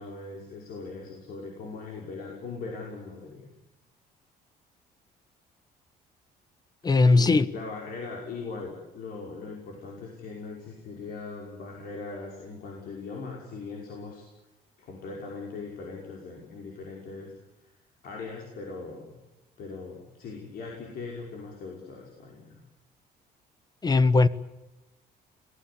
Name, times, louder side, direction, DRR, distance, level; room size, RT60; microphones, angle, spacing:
voice 1, 0.0-3.5 6.9-14.3 14.8-17.3 18.0-19.2 19.6-22.6, left 4 dB, 65° left, 5.6 m, -40 dB
voice 2, 6.8-7.5 23.8-24.3, left 3 dB, 25° left, 1.0 m, -19 dB
25.5 x 18.5 x 8.5 m
cardioid pair, 130°, 16 cm